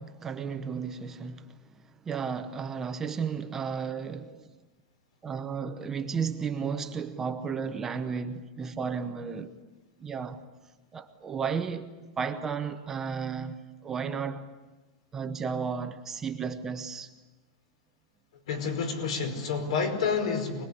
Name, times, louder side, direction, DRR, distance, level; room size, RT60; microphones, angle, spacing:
voice 1, 0.0-1.5 2.0-4.5 5.2-9.5 10.0-10.4 10.9-11.9 12.2-14.5 15.1-17.1, right 6 dB, 10° right, 0.8 m, -33 dB
voice 2, 18.5-20.6, left 5 dB, 70° left, 5.1 m, -29 dB
25.5 x 20.0 x 10.0 m
supercardioid pair, 180°, 3 cm